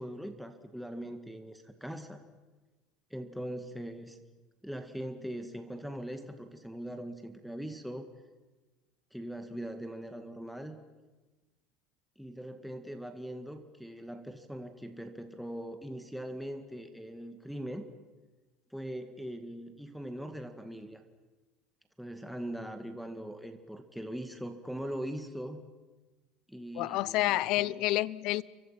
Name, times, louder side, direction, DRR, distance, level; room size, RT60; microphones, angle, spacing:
voice 1, 0.0-2.2 3.1-4.2 4.6-8.1 9.1-10.8 12.2-17.9 18.7-21.0 22.0-25.6 26.5-27.7, equal, ahead, 6 dB, 2.0 m, -41 dB
voice 2, 26.7-28.4, left 17 dB, 65° left, 22 dB, 0.7 m, -29 dB
30.0 x 23.5 x 5.9 m, 1.2 s
supercardioid pair, 100°, 0 cm